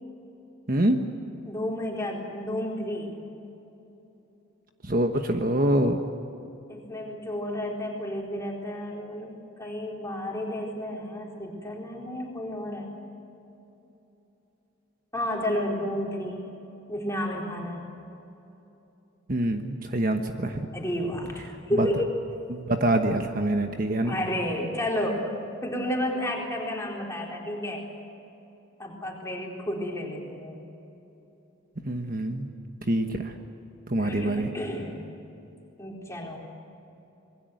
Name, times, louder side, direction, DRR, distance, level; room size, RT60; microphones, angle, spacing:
voice 1, 0.7-1.0 4.8-6.0 19.3-20.6 21.8-21.9 22.5-24.1 31.8-32.5 32.9-33.3 33.9-34.5, right 1 dB, 40° right, 5 dB, 1.2 m, -25 dB
voice 2, 1.4-3.2 6.7-12.9 15.1-16.5 16.9-17.8 20.7-22.1 24.0-25.3 25.6-27.9 28.8-30.6 34.0-35.0 35.8-36.4, left 1 dB, 15° left, -2 dB, 4.1 m, -31 dB
26.5 x 21.5 x 8.0 m, 3.0 s
head